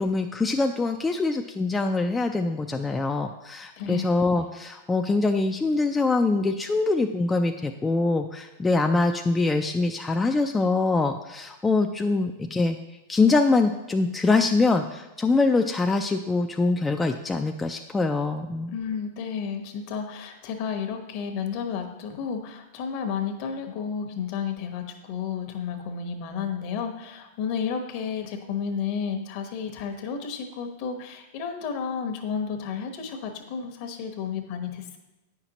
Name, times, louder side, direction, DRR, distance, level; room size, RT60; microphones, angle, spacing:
voice 1, 0.0-12.8 13.1-18.7, left 3 dB, 15° left, 4 dB, 0.4 m, -24 dB
voice 2, 3.8-4.1 18.7-35.0, left 6 dB, 55° left, 6 dB, 1.1 m, -32 dB
8.9 x 5.8 x 3.0 m, 1.0 s
hypercardioid pair, 105°, 0 cm